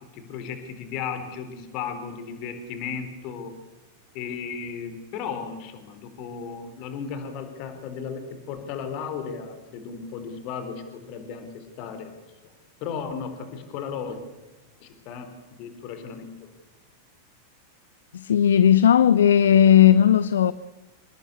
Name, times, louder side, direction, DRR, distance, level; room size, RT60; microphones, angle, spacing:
voice 1, 0.1-3.5 4.1-12.1 12.4-12.5 12.8-14.2 14.8-15.3 15.6-16.3, left 6 dB, 45° left, 4.2 m, -35 dB
voice 2, 18.1-20.5, left 9 dB, 65° left, 0.8 m, -16 dB
28.5 x 19.0 x 8.6 m
figure-of-eight pair, 90°, 0 cm